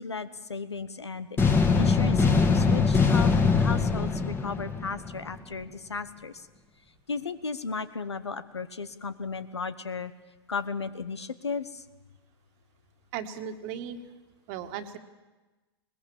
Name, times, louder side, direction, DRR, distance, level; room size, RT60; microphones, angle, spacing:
voice 1, 0.0-6.5 7.1-10.1 10.5-11.8, left 4 dB, 90° left, 13 dB, 1.1 m, -35 dB
sound 1, 1.4-5.3, left 4 dB, 15° left, 1.7 m, -22 dB
voice 2, 13.1-14.0 14.5-15.0, right 8 dB, 45° right, 8 dB, 1.8 m, -36 dB
21.5 x 20.0 x 7.2 m, 1.1 s
hypercardioid pair, 110°, 14 cm